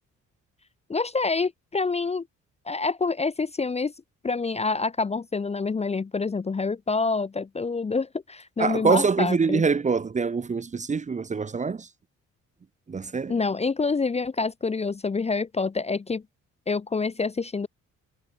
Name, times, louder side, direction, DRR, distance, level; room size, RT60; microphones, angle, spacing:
voice 1, 0.9-2.3 2.7-3.9 4.2-9.6 13.3-16.2 16.7-17.7, left 4 dB, 20° left, 0.6 m, -27 dB
voice 2, 8.6-11.9 12.9-13.4, right 5 dB, 25° right, 0.7 m, -24 dB
cardioid pair, 90°, 30 cm